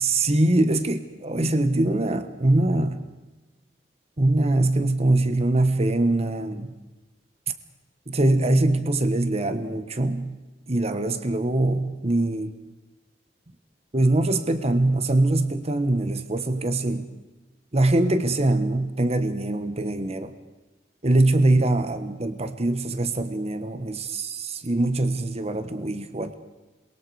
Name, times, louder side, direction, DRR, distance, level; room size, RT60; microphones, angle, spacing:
voice 1, 0.0-3.0 4.2-6.7 8.1-10.4 10.7-12.5 13.9-17.1 17.7-20.3 21.0-26.3, right 2 dB, 35° right, 10 dB, 1.2 m, -23 dB
27.5 x 22.5 x 4.8 m, 1.1 s
head